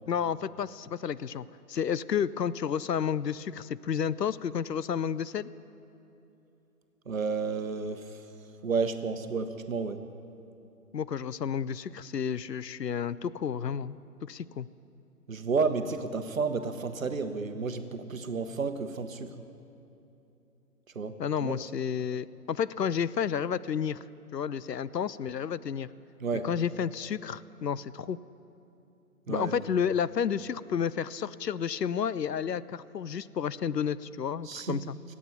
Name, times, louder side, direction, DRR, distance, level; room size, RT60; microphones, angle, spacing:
voice 1, 0.1-5.5 10.9-14.7 21.2-24.0 24.3-25.9 26.4-28.2 29.3-35.0, left 7 dB, 80° left, 18 dB, 0.6 m, -31 dB
voice 2, 7.1-8.3 8.6-10.1 15.3-19.4 20.9-21.6 26.2-26.5 29.3-29.6 34.4-34.8, right 4 dB, 55° right, 9 dB, 1.0 m, -31 dB
16.0 x 8.6 x 8.9 m, 2.9 s
figure-of-eight pair, 140°, 48 cm